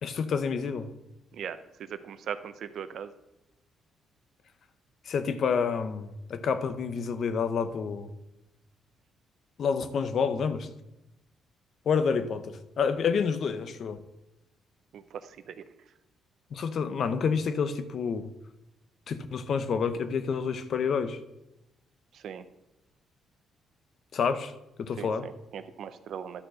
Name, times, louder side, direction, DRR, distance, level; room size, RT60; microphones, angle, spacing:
voice 1, 0.0-0.9 5.1-8.1 9.6-10.7 11.9-14.0 16.5-18.3 19.1-21.2 24.1-24.5 24.8-25.3, left 6 dB, 60° left, 11 dB, 0.7 m, -28 dB
voice 2, 1.3-3.1 14.9-15.6 22.1-22.4 25.0-26.5, right 8 dB, 70° right, 11 dB, 0.6 m, -39 dB
11.5 x 4.4 x 6.3 m, 0.93 s
cardioid pair, 90°, 0 cm